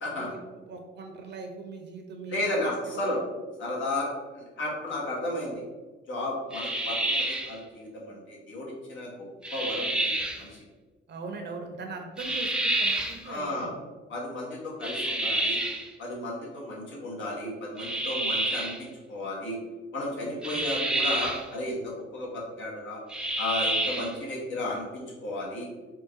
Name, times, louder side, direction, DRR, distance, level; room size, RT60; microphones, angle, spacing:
voice 1, 0.1-3.2 11.1-13.8 20.1-20.7, right 4 dB, 60° right, 2 dB, 0.8 m, -41 dB
voice 2, 2.3-3.2 3.6-5.6 6.1-7.0 7.3-10.1 10.4-10.6 13.2-13.7 14.1-15.6 16.0-19.6 19.9-23.0 23.4-25.7, left 1 dB, 75° left, -4 dB, 1.4 m, -33 dB
sound 1, 6.5-7.6 9.4-10.4 12.2-13.2 14.8-15.9 17.8-18.8 20.4-21.5 23.1-24.2, right 1 dB, 5° right, 0.4 m, -28 dB
3.8 x 2.4 x 3.6 m, 1.3 s
cardioid pair, 90°, 20 cm